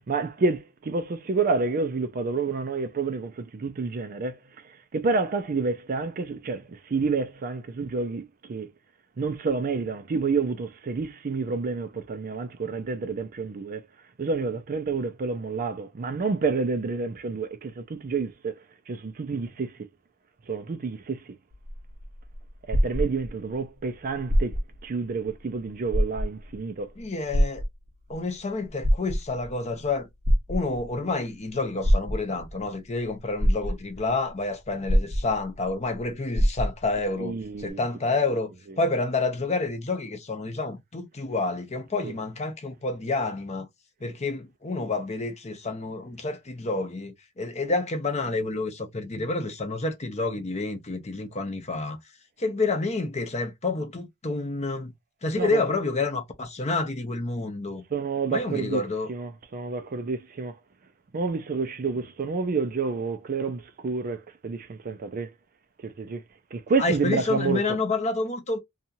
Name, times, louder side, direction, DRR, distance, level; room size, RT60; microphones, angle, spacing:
voice 1, 0.1-4.4 4.9-8.7 9.2-13.9 14.2-18.6 18.9-19.7 20.5-21.2 22.7-24.6 24.8-26.9 37.2-37.8 42.0-42.1 55.4-55.6 57.9-58.8 59.1-60.6 61.1-65.3 65.8-66.2 66.5-67.6, right 4 dB, 40° right, 0.4 m, -29 dB
sound 1, 21.5-23.6 24.2-24.9 25.3-25.4 25.9-26.6 27.3-28.1 28.7-29.5 30.2-31.0 31.8-32.5 33.1-33.2 33.4-34.1 34.9-35.7 35.9-36.0 36.3-37.0 37.7-37.8, equal, 90° right, 1.1 m, -24 dB
voice 2, 27.0-27.6 28.1-30.1 30.5-38.5 38.8-43.7 44.0-52.0 52.4-54.9 55.2-57.8 58.3-59.1 66.8-68.6, left 3 dB, 30° left, 0.7 m, -29 dB
2.8 x 2.3 x 2.6 m
head